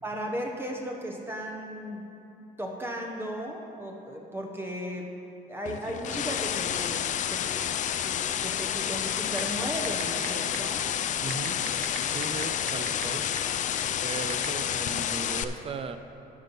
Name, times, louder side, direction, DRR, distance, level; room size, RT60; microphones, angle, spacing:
voice 1, 0.0-2.1 2.6-5.1 5.5-7.5 7.9-10.9, equal, 15° right, 0 dB, 0.9 m, -36 dB
sound 1, 5.7-15.4, left 9 dB, 50° left, 0.4 m, -30 dB
sound 2, 9.4-9.5 9.8-10.3 10.5-10.6 11.3-13.0 13.4-13.5 14.3-14.5, right 8 dB, 55° right, 1.0 m, -34 dB
voice 2, 11.2-11.6 12.1-13.3 14.0-16.0, right 5 dB, 35° right, 9 dB, 0.6 m, -37 dB
11.5 x 5.4 x 5.6 m, 2.8 s
cardioid pair, 110°, 17 cm